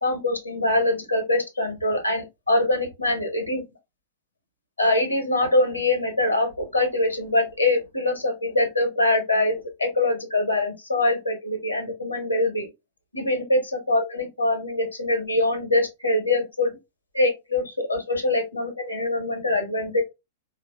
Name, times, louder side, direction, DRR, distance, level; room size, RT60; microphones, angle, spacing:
voice 1, 0.0-3.6 4.8-12.7 13.1-16.8 17.1-20.0, left 2 dB, 90° left, 0.9 m, -24 dB
4.0 x 2.6 x 2.2 m
figure-of-eight pair, 100°, 0 cm